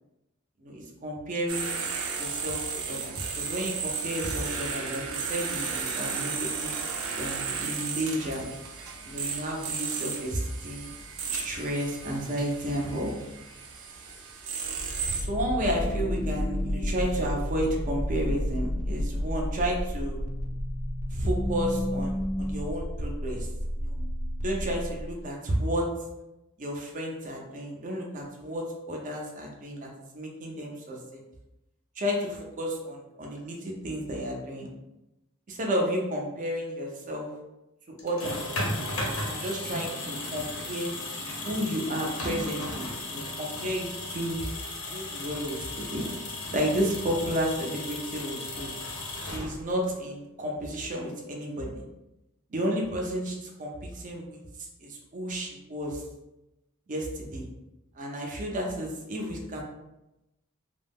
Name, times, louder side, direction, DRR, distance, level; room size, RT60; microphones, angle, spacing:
voice 1, 0.6-1.7 2.2-6.8 7.2-8.4 9.0-10.9 11.3-13.1 15.1-20.2 21.1-23.5 23.7-24.0 24.4-25.9 26.6-31.2 32.0-34.7 35.5-37.3 38.0-38.4 39.2-40.9 41.4-44.4 44.9-46.0 46.5-48.7 49.2-51.8 52.5-54.4 54.8-56.0 56.9-57.4 57.9-59.6, equal, 40° right, -1 dB, 0.5 m, -32 dB
sound 1, 1.5-15.2, right 5 dB, 90° right, 0.4 m, -34 dB
sound 2, 14.6-25.3, equal, 35° left, 0.4 m, -31 dB
sound 3, 38.0-49.9, left 2 dB, 85° left, 0.8 m, -35 dB
2.2 x 2.0 x 3.4 m, 0.94 s
head